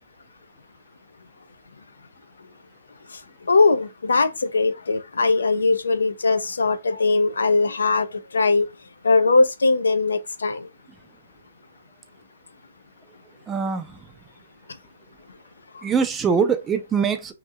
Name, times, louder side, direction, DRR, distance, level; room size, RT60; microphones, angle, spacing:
voice 1, 3.5-8.7 9.0-10.7 15.7-15.8, left 3 dB, 85° left, 0.4 m, -20 dB
voice 2, 13.5-13.9 15.8-17.3, right 6 dB, 15° right, 0.4 m, -22 dB
2.8 x 2.6 x 2.2 m
hypercardioid pair, 135°, 0 cm